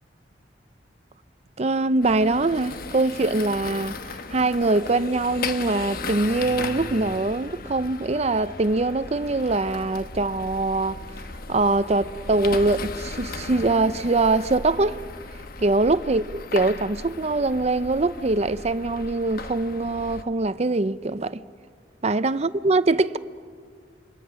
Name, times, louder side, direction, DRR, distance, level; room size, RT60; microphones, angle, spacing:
voice 1, 1.6-11.0 11.5-15.0 15.6-21.4 22.0-23.2, right 2 dB, 35° right, 0.6 m, -23 dB
sound 1, 2.0-20.2, left 3 dB, 55° left, 1.1 m, -36 dB
29.0 x 25.0 x 6.4 m
head